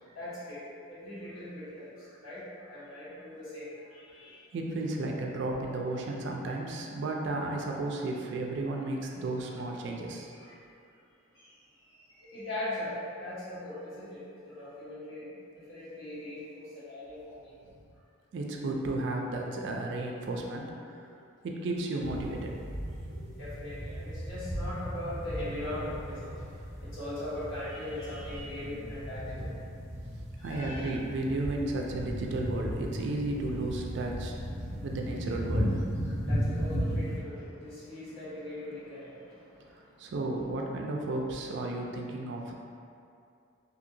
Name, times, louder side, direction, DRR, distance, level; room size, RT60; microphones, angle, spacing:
voice 1, 0.0-4.4 10.1-10.7 11.3-17.6 23.1-29.6 30.4-31.0 34.7-35.1 36.0-40.1, left 1 dB, 75° left, -12 dB, 1.2 m, -41 dB
voice 2, 4.5-10.3 18.3-20.7 21.0-21.1 21.4-22.6 30.4-34.3 34.8-35.8 40.0-42.5, right 2 dB, 55° right, 0 dB, 0.3 m, -33 dB
sound 1, 22.0-37.2, equal, 35° left, 0.8 m, -36 dB
2.7 x 2.7 x 2.6 m, 2.5 s
head